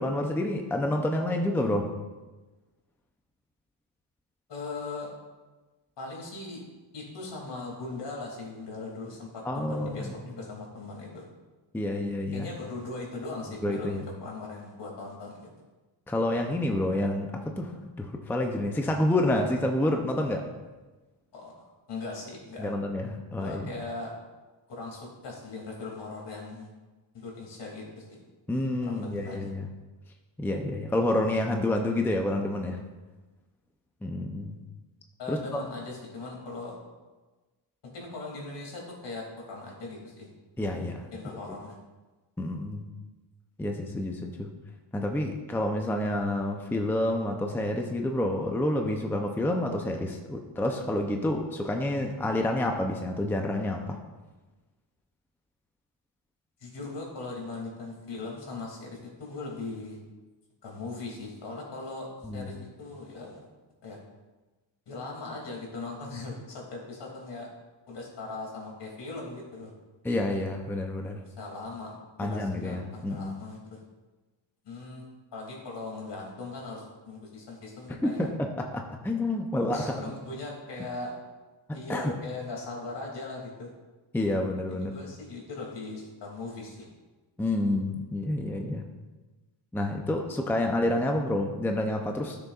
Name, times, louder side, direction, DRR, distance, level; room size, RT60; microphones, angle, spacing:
voice 1, 0.0-1.9 9.4-10.1 11.7-12.5 13.6-14.0 16.1-20.5 22.6-23.7 28.5-29.7 30.4-32.8 34.0-34.6 35.3-35.6 40.6-41.1 42.4-42.8 43.6-44.5 44.9-54.0 62.2-62.6 70.0-71.2 72.2-73.3 78.0-80.1 81.9-82.1 84.1-84.9 87.4-88.8 89.7-92.4, left 1 dB, 5° left, 3 dB, 0.6 m, -28 dB
voice 2, 4.5-5.1 6.0-6.6 6.9-11.2 12.3-15.5 21.3-22.7 23.4-24.1 24.8-26.7 27.1-28.2 28.9-29.5 35.2-36.7 37.9-40.3 41.1-41.8 56.6-60.0 60.6-62.1 62.3-63.4 63.8-64.0 64.9-67.5 67.9-69.7 71.2-71.9 72.2-73.8 74.6-75.0 75.3-78.3 79.7-81.1 81.7-83.7 84.8-86.8, left 3 dB, 65° left, -1 dB, 2.7 m, -39 dB
13.0 x 6.8 x 2.4 m, 1.2 s
cardioid pair, 125°, 45 cm